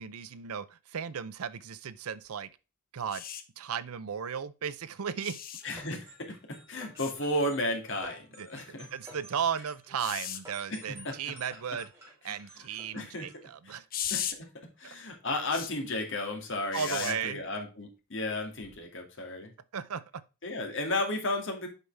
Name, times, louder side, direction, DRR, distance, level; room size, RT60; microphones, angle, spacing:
voice 1, 0.0-2.5 2.9-3.2 3.6-5.4 8.4-8.6 8.9-11.9 12.2-13.8 16.7-17.4 19.7-20.2, right 7 dB, 80° right, 0.6 m, -35 dB
sound 1, 3.1-3.4 5.2-5.6 7.0-7.1 10.0-10.4 13.9-14.3 15.5-15.7 16.7-17.1 18.6-18.8, left 9 dB, 40° left, 0.8 m, -36 dB
voice 2, 5.6-8.9 10.7-11.2 12.3-12.4 12.9-13.8 14.1-14.5 14.8-19.5 20.4-21.7, left 1 dB, 55° left, 2.1 m, -34 dB
sound 2, 5.6-13.5, equal, 10° right, 3.1 m, -53 dB
8.0 x 5.5 x 3.3 m
head